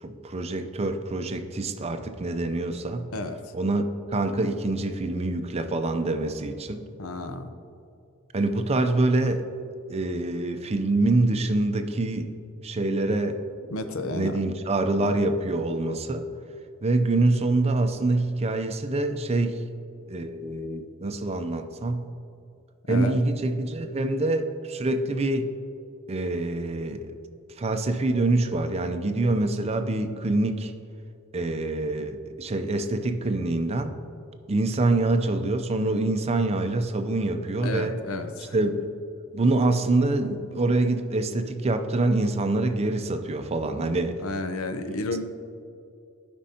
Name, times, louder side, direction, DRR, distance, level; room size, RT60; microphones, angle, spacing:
voice 1, 0.0-3.1 3.5-3.8 4.1-6.8 8.3-9.5 9.9-12.4 12.6-13.4 14.1-16.3 16.8-19.6 20.1-22.1 22.9-25.5 26.1-27.1 27.6-30.7 31.3-34.0 34.5-38.0 38.5-38.9 39.3-44.2, right 2 dB, 30° right, 7 dB, 0.5 m, -25 dB
voice 2, 3.1-3.5 7.0-7.5 13.7-14.5 22.9-23.2 37.6-38.5 44.2-45.2, left 2 dB, 80° left, 8 dB, 0.7 m, -32 dB
15.0 x 5.3 x 2.8 m, 2.5 s
head